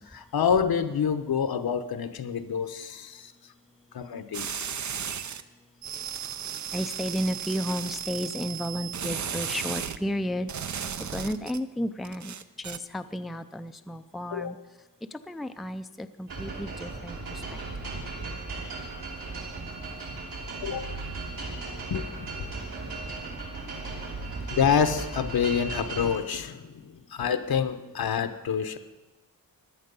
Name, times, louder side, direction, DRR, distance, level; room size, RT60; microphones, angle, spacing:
voice 1, 0.0-3.3 3.9-4.7 14.3-14.5 20.6-20.9 21.9-22.5 24.5-28.8, left 7 dB, 75° left, 10 dB, 1.0 m, -27 dB
sound 1, 4.3-5.4 5.8-10.0 10.5-11.6 12.0-12.8, right 8 dB, 50° right, 0.6 m, -35 dB
voice 2, 6.7-14.6 15.1-17.9, equal, ahead, 9 dB, 0.4 m, -33 dB
sound 2, 16.3-26.2, right 3 dB, 70° right, 3.6 m, -36 dB
16.5 x 11.0 x 5.4 m, 1.1 s
wide cardioid pair, 135°, 37 cm